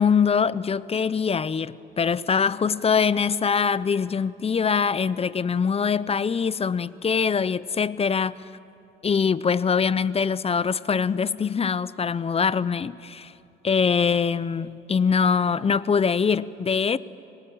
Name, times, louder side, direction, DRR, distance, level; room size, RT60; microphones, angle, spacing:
voice 1, 0.0-8.4 9.0-13.3 13.6-17.0, left 6 dB, 30° left, 0.6 m, -23 dB
23.5 x 19.0 x 8.9 m
cardioid pair, 90°, 20 cm